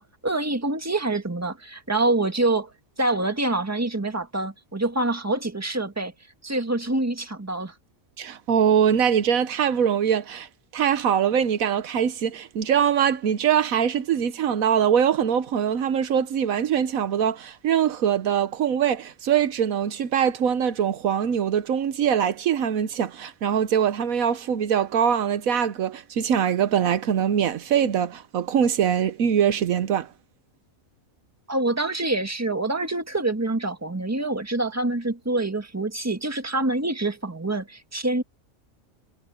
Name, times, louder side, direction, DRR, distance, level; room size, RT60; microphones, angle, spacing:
voice 1, 0.0-2.7 3.0-6.1 6.4-7.7 31.5-38.2, right 2 dB, 10° right, 1.7 m, -26 dB
voice 2, 8.2-30.1, right 8 dB, 80° right, 1.3 m, -23 dB
omnidirectional pair, 1.5 m